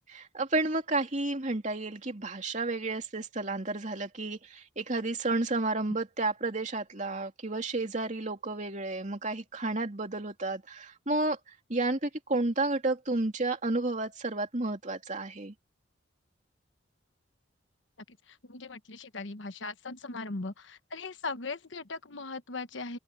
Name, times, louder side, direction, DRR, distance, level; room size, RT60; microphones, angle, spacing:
voice 1, 0.1-11.4 11.7-15.5, right 2 dB, 40° right, 2.9 m, -31 dB
voice 2, 18.5-23.0, left 3 dB, 70° left, 1.2 m, -39 dB
open air
head